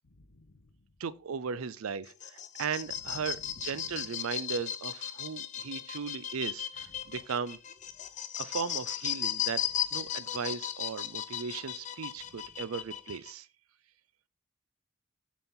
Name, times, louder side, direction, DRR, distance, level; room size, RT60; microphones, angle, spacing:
voice 1, 0.0-0.7 3.2-4.0, left 2 dB, 80° left, 0.8 m, -56 dB
voice 2, 1.0-7.6 8.4-9.6 9.9-13.5, right 6 dB, 85° right, 0.5 m, -37 dB
Milky Way CB Trem gate, 2.0-13.3, left 11 dB, 35° left, 0.4 m, -36 dB
6.9 x 4.4 x 3.7 m
head